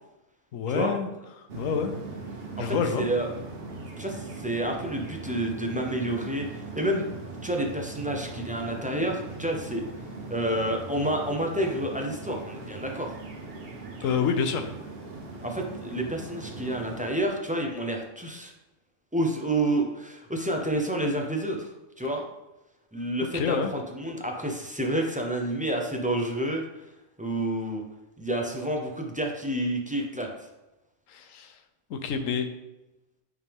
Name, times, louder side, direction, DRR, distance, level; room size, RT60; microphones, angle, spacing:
voice 1, 0.5-1.1 1.5-1.9 2.6-3.1 14.0-14.7 23.3-23.7 31.1-31.5 31.9-32.5, left 6 dB, 80° left, 7 dB, 1.1 m, -27 dB
sound 1, 1.5-17.3, right 3 dB, 50° right, 1.1 m, -40 dB
voice 2, 2.6-3.3 4.0-7.1 7.4-9.9 10.3-13.1 15.4-18.5 19.1-22.2 22.9-26.6 27.2-27.8 28.2-30.3, right 1 dB, 10° right, 1 dB, 0.6 m, -29 dB
8.9 x 3.5 x 3.5 m, 1.0 s
omnidirectional pair, 1.3 m